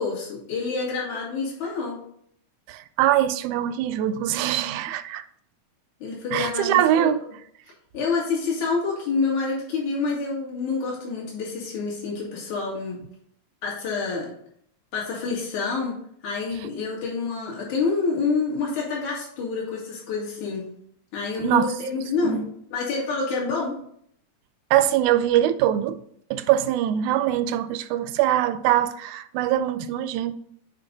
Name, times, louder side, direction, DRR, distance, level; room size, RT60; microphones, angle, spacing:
voice 1, 0.0-2.0 6.0-7.1 7.9-13.0 13.6-14.3 14.9-20.7 21.1-23.8, left 4 dB, 70° left, 3.6 m, -27 dB
voice 2, 2.7-5.2 6.3-7.2 21.4-21.6 22.2-22.4 24.7-26.0 26.3-30.3, right 12 dB, 80° right, 1.9 m, -22 dB
8.2 x 5.2 x 3.9 m
omnidirectional pair, 3.5 m